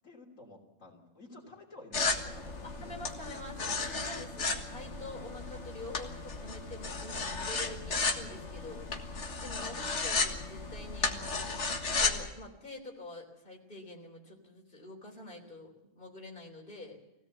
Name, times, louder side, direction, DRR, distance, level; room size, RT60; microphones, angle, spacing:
voice 1, 0.0-3.0, left 2 dB, 80° left, -1 dB, 3.4 m, -52 dB
sound 1, 1.9-12.3, left 4 dB, 60° left, 1.9 m, -34 dB
voice 2, 2.6-8.9 9.4-11.5 12.0-17.0, left 2 dB, 40° left, 0 dB, 3.6 m, -46 dB
22.0 x 17.0 x 8.0 m, 0.90 s
omnidirectional pair, 1.3 m